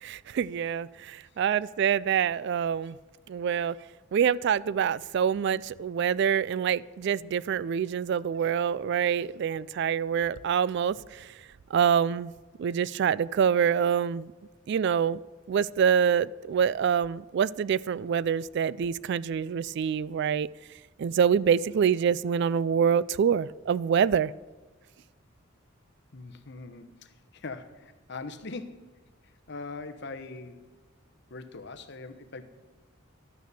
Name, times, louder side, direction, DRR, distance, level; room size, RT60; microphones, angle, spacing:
voice 1, 0.0-3.0 3.3-3.8 4.1-11.3 11.7-12.3 12.6-14.3 14.7-15.2 15.5-20.5 21.0-24.3, right 7 dB, 55° right, 0.3 m, -26 dB
voice 2, 26.1-30.7 31.3-32.4, left 3 dB, 55° left, 0.9 m, -42 dB
12.5 x 9.3 x 6.7 m
head